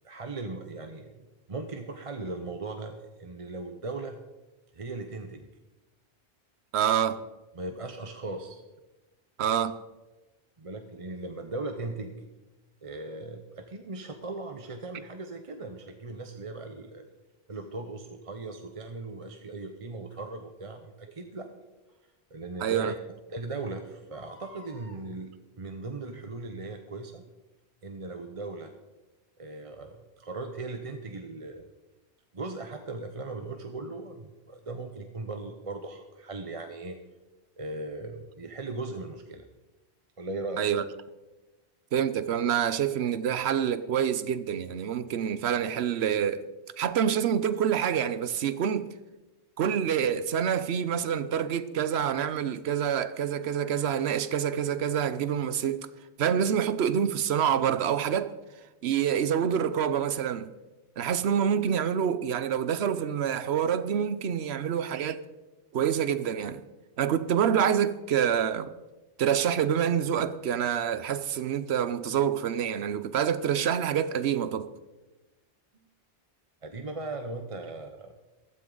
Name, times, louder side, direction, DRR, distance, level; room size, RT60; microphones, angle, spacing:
voice 1, 0.0-4.2 4.7-5.5 7.5-8.6 10.6-12.1 12.8-17.1 17.5-21.5 22.3-22.9 23.3-27.2 27.8-28.7 29.4-31.7 32.3-37.0 37.6-39.4 40.2-40.7 75.7-75.8 76.6-78.1, right 3 dB, 35° right, 0.8 m, -38 dB
voice 2, 6.7-7.2 9.4-9.7 22.6-22.9 40.6-40.8 41.9-46.4 46.8-48.9 49.6-55.9 56.2-58.3 58.8-60.5 61.0-65.2 65.7-66.6 67.0-68.7 69.2-74.7, right 8 dB, 75° right, 1.0 m, -27 dB
Crying sobbing, 17.5-17.6 20.1-20.3 21.9-22.0 22.5-22.6 22.8-22.9 24.0-25.0 26.0-26.3 26.9-27.0, equal, 55° left, 2.4 m, -53 dB
15.0 x 13.0 x 3.9 m
omnidirectional pair, 1.1 m